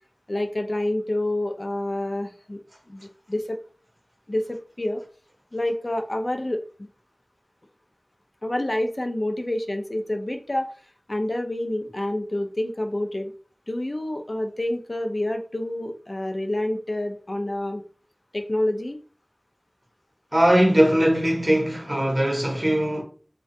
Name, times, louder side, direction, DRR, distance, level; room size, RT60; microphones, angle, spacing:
voice 1, 0.3-2.6 2.9-3.6 4.3-5.0 5.5-6.6 8.4-10.7 11.1-13.3 13.7-17.8 18.3-19.0, left 1 dB, 45° left, 0.3 m, -28 dB
voice 2, 20.3-23.0, equal, 45° right, 0.8 m, -20 dB
2.4 x 2.2 x 2.6 m
wide cardioid pair, 45°, 0 cm